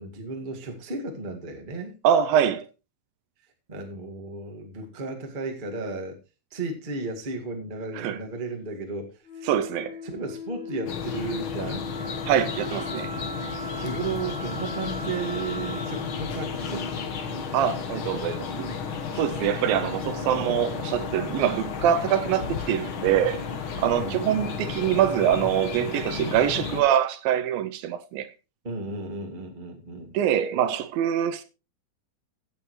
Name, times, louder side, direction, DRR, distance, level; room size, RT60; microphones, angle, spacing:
voice 1, 0.0-1.9 3.7-6.2 6.5-9.5 10.0-12.2 13.3-17.1 24.0-24.3 28.6-30.2, right 3 dB, 30° right, 0.9 m, -34 dB
voice 2, 2.0-2.7 8.0-8.2 9.5-10.0 12.3-13.1 17.5-18.7 19.1-23.4 23.8-28.3 30.1-31.4, right 10 dB, 80° right, 2.3 m, -24 dB
Wind instrument woodwind instrument, 9.2-18.0, left 3 dB, 60° left, 4.9 m, -38 dB
sound 1, 10.9-26.8, left 6 dB, 80° left, 1.1 m, -33 dB
15.5 x 8.9 x 3.1 m
omnidirectional pair, 4.4 m